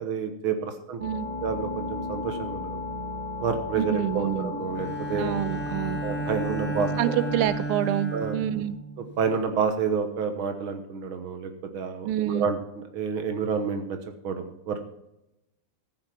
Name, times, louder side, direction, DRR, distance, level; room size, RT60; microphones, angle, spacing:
voice 1, 0.0-1.0 1.4-2.7 3.4-5.4 6.0-7.1 8.1-8.4 9.2-12.6 12.9-14.0 14.2-15.0, right 6 dB, 70° right, 7 dB, 2.0 m, -29 dB
sound 1, 1.0-7.6, left 3 dB, 25° right, 0.9 m, -35 dB
voice 2, 3.7-4.5 5.1-6.0 6.8-8.8 12.0-12.5, right 11 dB, 85° right, 14 dB, 1.6 m, -27 dB
Bowed string instrument, 4.7-9.4, right 2 dB, 10° left, 0.7 m, -33 dB
14.0 x 6.6 x 5.9 m, 0.87 s
omnidirectional pair, 2.4 m